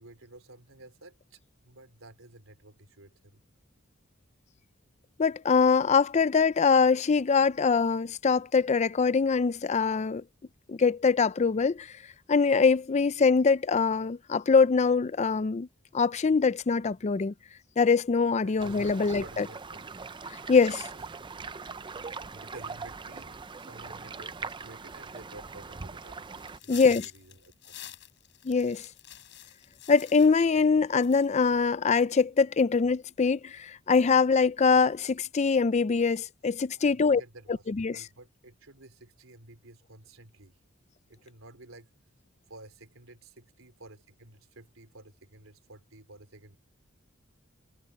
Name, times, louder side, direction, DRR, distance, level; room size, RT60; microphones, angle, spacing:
voice 1, 0.0-3.4 18.4-19.9 20.9-21.2 22.3-26.3 26.6-28.0 36.8-37.6 37.9-40.6 41.1-41.9 42.5-46.6, right 2 dB, 80° right, 3.9 m, -52 dB
voice 2, 5.2-10.2 10.7-11.9 12.3-15.7 15.9-17.3 17.8-19.5 20.5-20.9 26.7-27.1 28.4-28.8 29.9-37.2 37.5-38.1, left 5 dB, 35° left, 0.4 m, -23 dB
sound 1, 18.6-26.6, right 4 dB, 25° right, 0.5 m, -41 dB
sound 2, 26.4-30.7 31.0-31.5, left 12 dB, 60° left, 7.2 m, -47 dB
head